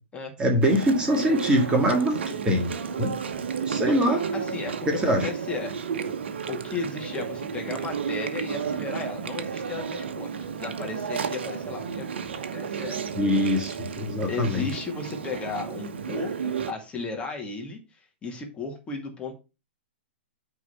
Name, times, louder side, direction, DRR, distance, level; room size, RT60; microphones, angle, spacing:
voice 1, 0.4-2.7 3.0-3.1 3.7-4.2 4.9-5.3 13.2-14.7, equal, 15° right, 2 dB, 1.9 m, -23 dB
Chewing mastication, 0.6-16.7, right 6 dB, 65° right, 1.1 m, -32 dB
voice 2, 3.9-5.7 6.5-12.1 12.3-13.0 14.3-19.4, left 4 dB, 15° left, 2 dB, 2.2 m, -35 dB
9.5 x 4.0 x 5.6 m, 0.30 s
figure-of-eight pair, 115°, 6 cm